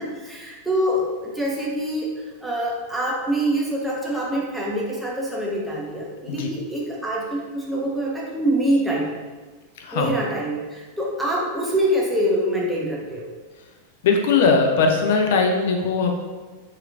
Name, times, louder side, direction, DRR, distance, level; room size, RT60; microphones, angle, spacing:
voice 1, 0.0-2.1 2.4-9.1 9.9-13.3, right 1 dB, 5° right, -4 dB, 0.6 m, -25 dB
voice 2, 9.8-10.1 14.0-16.1, left 4 dB, 55° left, 2 dB, 0.4 m, -19 dB
2.8 x 2.4 x 2.5 m, 1.3 s
figure-of-eight pair, 90°, 0 cm